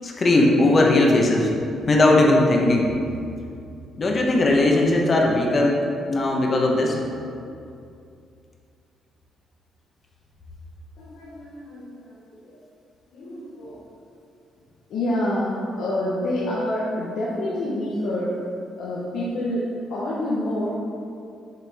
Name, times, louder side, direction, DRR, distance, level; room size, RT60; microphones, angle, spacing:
voice 1, 0.0-1.5 1.9-2.9 4.0-5.8 6.1-7.0, left 2 dB, 40° left, 0 dB, 0.9 m, -18 dB
voice 2, 11.0-12.4 13.1-13.8 14.9-18.4 18.8-19.6 19.9-20.7, left 1 dB, 80° left, -7 dB, 0.9 m, -27 dB
6.5 x 4.4 x 3.5 m, 2.5 s
cardioid pair, 90°, 0 cm